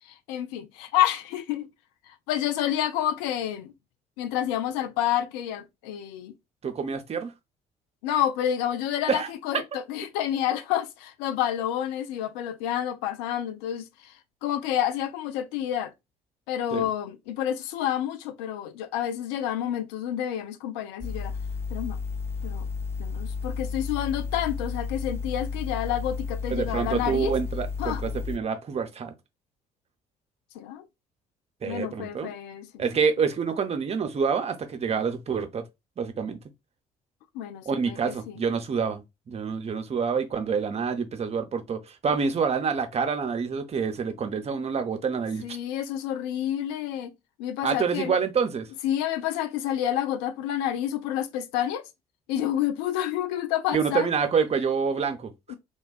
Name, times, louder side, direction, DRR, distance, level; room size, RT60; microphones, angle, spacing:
voice 1, 0.3-1.7 2.1-3.7 4.2-6.3 8.0-14.1 14.4-15.9 16.5-21.3 21.7-22.0 22.4-22.7 23.0-27.3 27.8-28.0 30.5-30.8 31.6-32.8 37.3-38.4 45.4-47.1 47.4-48.1 48.8-51.8 52.3-54.1 55.5-55.6, left 11 dB, 65° left, 0.4 m, -29 dB
voice 2, 6.6-7.3 9.1-9.3 16.7-16.9 26.5-29.1 31.6-32.3 32.8-35.6 36.0-36.4 37.7-45.6 47.6-48.7 53.7-55.6, right 6 dB, 35° right, 0.6 m, -27 dB
sound 1, 21.0-28.4, left 5 dB, 15° left, 0.5 m, -32 dB
3.3 x 2.2 x 2.4 m
figure-of-eight pair, 50°, 19 cm